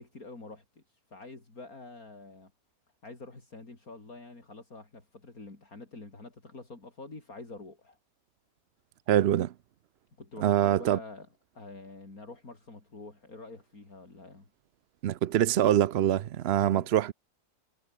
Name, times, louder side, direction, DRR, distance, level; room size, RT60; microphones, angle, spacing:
voice 1, 0.0-2.5 3.0-8.0 10.2-11.3 11.5-14.5 16.6-16.9, left 3 dB, 65° left, 5.0 m, -47 dB
voice 2, 9.1-9.5 10.4-11.0 15.0-17.1, right 11 dB, 65° right, 0.6 m, -24 dB
omnidirectional pair, 1.6 m